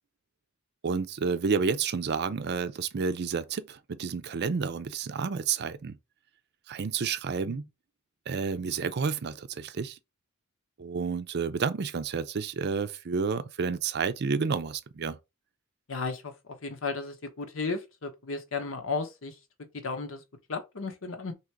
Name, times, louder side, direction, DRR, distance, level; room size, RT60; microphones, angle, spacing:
voice 1, 0.8-6.0 6.7-7.6 8.3-10.0 10.8-15.2, right 5 dB, 55° right, 0.5 m, -30 dB
voice 2, 15.9-19.3 19.8-20.2 20.5-21.3, left 4 dB, 70° left, 1.0 m, -34 dB
3.8 x 3.0 x 4.6 m
head